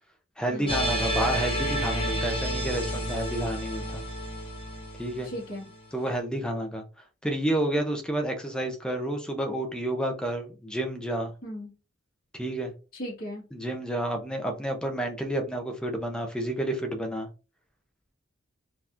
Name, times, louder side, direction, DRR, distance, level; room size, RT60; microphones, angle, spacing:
voice 1, 0.4-4.0 5.0-5.3 5.9-6.8 7.2-11.3 12.3-12.7 13.5-17.3, right 1 dB, 5° left, 0.6 m, -30 dB
sound 1, 0.7-5.8, right 1 dB, 25° left, 1.0 m, -30 dB
voice 2, 5.2-5.7 11.4-11.7 12.9-13.4, equal, 45° left, 1.6 m, -37 dB
3.8 x 2.9 x 2.5 m
head